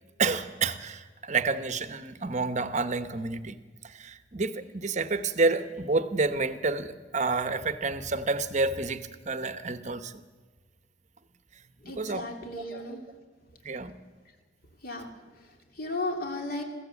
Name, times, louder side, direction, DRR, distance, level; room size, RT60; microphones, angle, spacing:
voice 1, 0.2-3.6 3.8-10.1 11.8-12.2 12.6-12.7 13.6-13.9 15.0-15.1, right 3 dB, 40° right, 0.9 m, -29 dB
voice 2, 11.9-13.0 14.8-15.0 15.8-16.6, left 2 dB, 50° left, 3.1 m, -34 dB
21.5 x 15.0 x 8.3 m
head